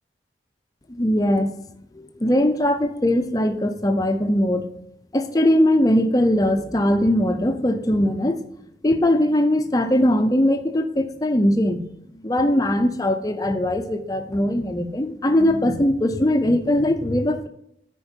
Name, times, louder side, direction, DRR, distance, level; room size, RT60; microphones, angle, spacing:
voice 1, 1.0-1.5 1.9-4.7 5.1-8.4 8.8-11.9 12.2-17.5, left 1 dB, 20° left, 7 dB, 0.5 m, -20 dB
10.5 x 4.6 x 4.4 m, 0.76 s
head